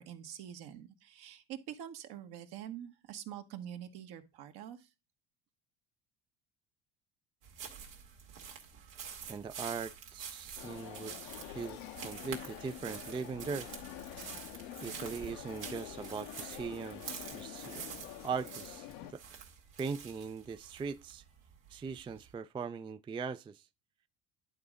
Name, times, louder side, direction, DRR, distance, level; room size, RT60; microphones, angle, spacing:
voice 1, 0.0-4.9, right 10 dB, 65° right, 1.4 m, -46 dB
sound 1, 7.4-22.3, right 7 dB, 85° right, 2.1 m, -48 dB
voice 2, 9.3-13.7 14.8-17.8 18.2-19.2 19.8-21.2 21.7-23.6, right 5 dB, 15° right, 0.3 m, -40 dB
sound 2, 10.6-19.1, left 13 dB, 80° left, 0.9 m, -47 dB
11.0 x 4.0 x 3.6 m
supercardioid pair, 80°, 43 cm